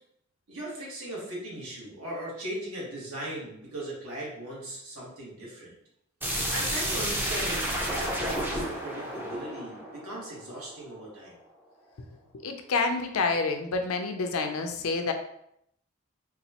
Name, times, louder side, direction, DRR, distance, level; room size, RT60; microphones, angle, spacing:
voice 1, 0.5-5.7 6.5-9.8 10.0-11.3, right 1 dB, 75° right, -5 dB, 1.4 m, -38 dB
sound 1, 6.2-10.9, equal, 10° right, 0.4 m, -31 dB
voice 2, 12.3-15.1, left 4 dB, 70° left, 6 dB, 0.4 m, -28 dB
4.0 x 2.3 x 2.8 m, 0.74 s
head